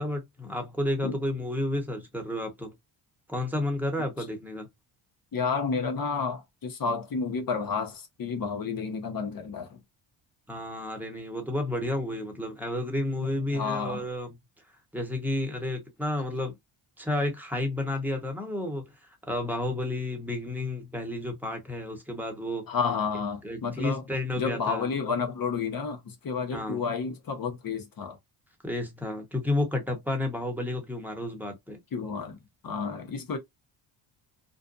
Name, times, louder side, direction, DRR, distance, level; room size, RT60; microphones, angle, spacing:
voice 1, 0.0-2.7 3.3-4.7 10.5-14.4 14.9-16.5 17.0-22.7 23.4-24.9 26.5-26.8 28.6-31.8, left 1 dB, 5° right, 1.1 m, -31 dB
voice 2, 5.3-9.8 13.2-14.0 22.7-24.0 24.4-28.2 31.9-32.4 32.6-33.4, left 5 dB, 45° left, 1.0 m, -31 dB
2.5 x 2.2 x 2.5 m
supercardioid pair, 70°, 49 cm